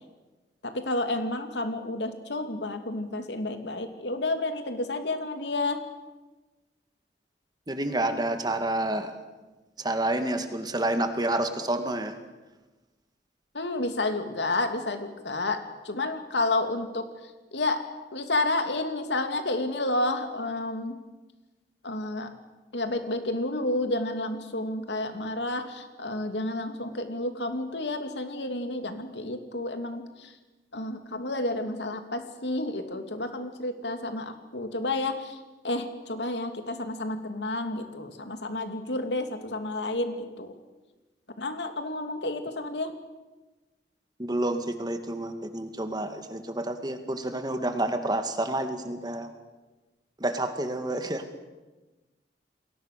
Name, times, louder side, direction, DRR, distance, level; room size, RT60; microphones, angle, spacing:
voice 1, 0.6-5.8 13.5-17.0 17.5-17.8 18.1-21.0 21.8-22.3 22.7-30.3 30.7-40.5 41.4-42.9, left 2 dB, 85° left, 7 dB, 2.7 m, -30 dB
voice 2, 7.7-9.1 9.8-12.2 44.2-49.3 50.2-51.3, right 1 dB, 25° right, 7 dB, 2.1 m, -29 dB
29.0 x 21.5 x 6.8 m, 1.2 s
head